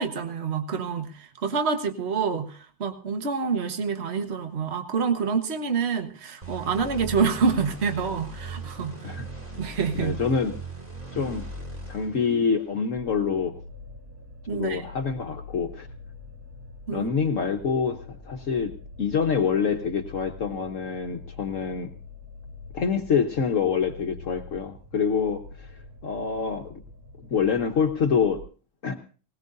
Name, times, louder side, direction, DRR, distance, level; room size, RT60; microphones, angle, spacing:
voice 1, 0.0-9.2 9.6-10.2 14.5-14.9 16.9-17.1, right 5 dB, 45° right, 7 dB, 1.6 m, -27 dB
sound 1, 6.4-12.9, right 3 dB, 25° right, 2.6 m, -39 dB
voice 2, 9.9-10.6 11.1-11.5 11.9-13.6 14.5-15.9 16.9-18.7 19.0-21.9 22.7-25.7 26.0-26.7 27.3-28.4 28.8-29.0, left 6 dB, 60° left, 4 dB, 1.3 m, -26 dB
sound 2, 13.0-28.4, left 3 dB, 90° right, 2.6 m, -45 dB
19.5 x 19.5 x 2.6 m, 0.37 s
omnidirectional pair, 1.6 m